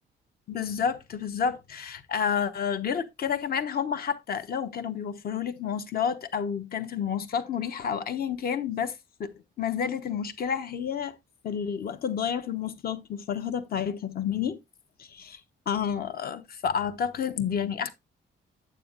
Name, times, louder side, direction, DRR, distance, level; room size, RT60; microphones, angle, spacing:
voice 1, 0.5-9.3 9.6-11.2 11.4-14.6 15.0-15.4 15.7-17.9, left 7 dB, 50° left, 1.0 m, -30 dB
9.1 x 8.1 x 2.5 m
cardioid pair, 165°, 20 cm